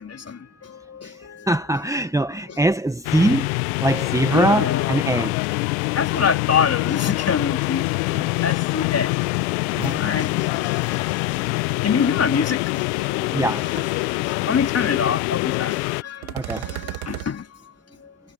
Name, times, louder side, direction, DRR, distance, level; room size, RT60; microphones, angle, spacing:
voice 1, 0.0-1.5 2.5-2.6 4.3-4.9 6.0-9.2 9.8-13.4 14.0-17.5 18.0-18.1, left 6 dB, 30° left, 3.7 m, -26 dB
voice 2, 1.5-3.5 3.8-5.4 8.1-8.6 9.7-10.0 13.3-13.7 16.3-16.7, right 1 dB, 5° right, 1.3 m, -22 dB
sound 1, 3.0-16.0, left 27 dB, 75° left, 1.0 m, -24 dB
sound 2, 12.8-12.9 13.2-13.5 13.8-13.9 16.2-17.3, right 25 dB, 70° right, 2.5 m, -33 dB
hypercardioid pair, 70°, 47 cm